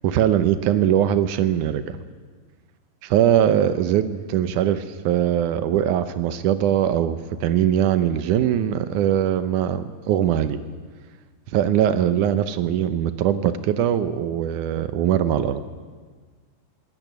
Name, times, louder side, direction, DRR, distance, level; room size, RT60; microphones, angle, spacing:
voice 1, 0.0-2.0 3.0-10.6 11.5-15.6, right 10 dB, 90° right, 11 dB, 2.4 m, -21 dB
23.0 x 19.5 x 9.3 m, 1.5 s
omnidirectional pair, 3.5 m